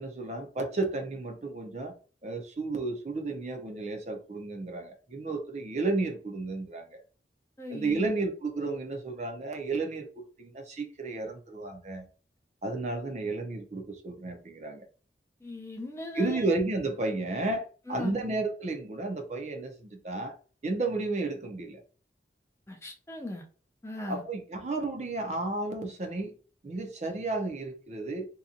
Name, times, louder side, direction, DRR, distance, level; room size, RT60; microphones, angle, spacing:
voice 1, 0.0-1.9 2.2-7.0 7.7-12.1 12.6-14.8 16.1-20.4 20.6-21.8 24.1-26.3 26.6-28.3, right 3 dB, 40° right, 4 dB, 0.5 m, -32 dB
voice 2, 7.6-8.1 15.4-16.5 17.9-18.2 22.7-23.5 23.8-24.2, left 2 dB, 15° left, 2 dB, 0.4 m, -38 dB
2.8 x 2.2 x 2.5 m, 0.39 s
head